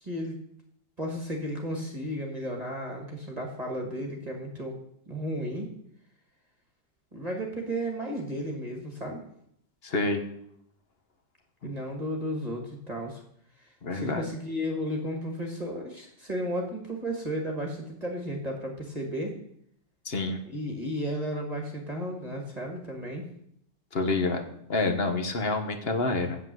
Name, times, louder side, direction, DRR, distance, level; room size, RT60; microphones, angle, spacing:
voice 1, 0.0-0.4 1.0-4.7 5.1-5.7 7.1-9.2 11.6-13.2 13.9-19.4 20.5-23.3, equal, 25° right, 1 dB, 1.6 m, -33 dB
voice 2, 9.8-10.2 13.8-14.2 20.0-20.4 23.9-26.4, left 3 dB, 40° left, 6 dB, 1.2 m, -28 dB
8.2 x 7.6 x 7.6 m, 0.74 s
omnidirectional pair, 1.9 m